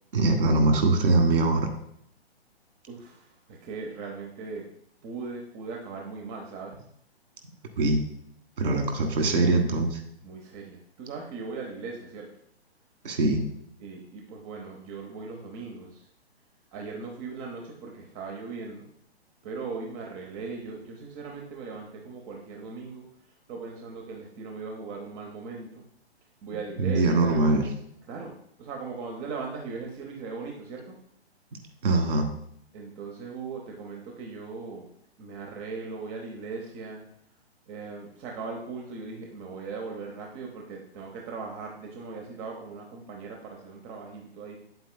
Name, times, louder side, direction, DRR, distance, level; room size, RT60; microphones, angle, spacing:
voice 1, 0.1-1.7 7.8-8.0 8.6-10.0 13.0-13.4 26.8-27.7 31.8-32.3, right 2 dB, 55° right, 3 dB, 1.6 m, -22 dB
voice 2, 2.9-4.6 5.0-6.8 8.6-8.8 10.2-12.3 13.8-16.0 16.7-18.9 19.4-23.1 23.5-25.8 26.4-27.4 28.1-30.9 32.7-34.9 35.2-37.0 37.7-44.6, right 4 dB, 20° right, 1 dB, 0.7 m, -39 dB
8.5 x 7.9 x 2.2 m, 0.71 s
figure-of-eight pair, 125°, 32 cm